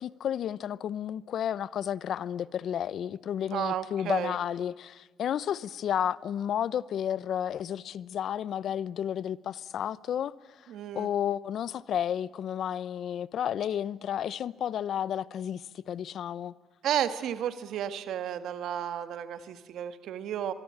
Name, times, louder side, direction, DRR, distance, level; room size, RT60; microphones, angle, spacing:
voice 1, 0.0-10.3 10.9-16.5, left 9 dB, 70° left, 0.8 m, -32 dB
voice 2, 3.5-4.4 10.7-11.1 16.8-20.5, right 10 dB, 80° right, 1.6 m, -32 dB
24.5 x 23.0 x 8.8 m
cardioid pair, 90°, 0 cm